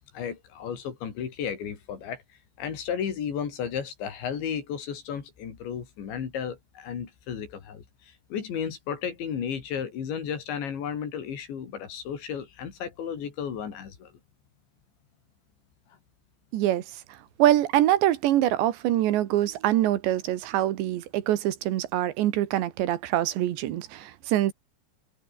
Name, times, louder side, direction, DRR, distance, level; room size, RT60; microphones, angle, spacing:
voice 1, 0.1-2.2 2.6-14.1, left 8 dB, 85° left, 6.1 m, -33 dB
voice 2, 16.5-16.8 17.4-24.5, right 13 dB, 80° right, 3.7 m, -24 dB
omnidirectional pair, 5.1 m